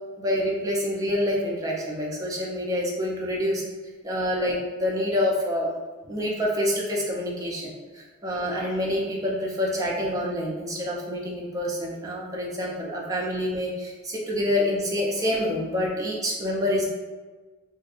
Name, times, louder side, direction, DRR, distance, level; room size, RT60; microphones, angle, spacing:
voice 1, 0.2-3.6 4.0-5.7 6.0-16.8, left 1 dB, 15° right, -4 dB, 0.4 m, -27 dB
2.6 x 2.3 x 2.4 m, 1.3 s
head